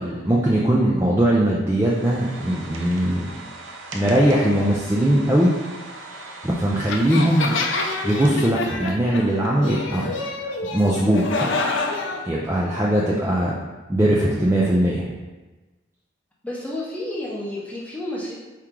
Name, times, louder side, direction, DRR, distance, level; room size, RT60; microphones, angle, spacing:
voice 1, 0.0-3.3 3.9-5.5 6.4-7.5 8.0-10.1 10.7-11.3 12.2-13.6 13.9-15.1, right 1 dB, 15° right, -5 dB, 0.3 m, -20 dB
sound 1, 1.9-8.4, right 2 dB, 75° right, 0.6 m, -39 dB
sound 2, 6.9-12.2, left 3 dB, 70° left, 0.5 m, -27 dB
voice 2, 16.4-18.3, left 1 dB, 5° left, -4 dB, 0.7 m, -30 dB
4.7 x 2.9 x 3.6 m, 1.2 s
head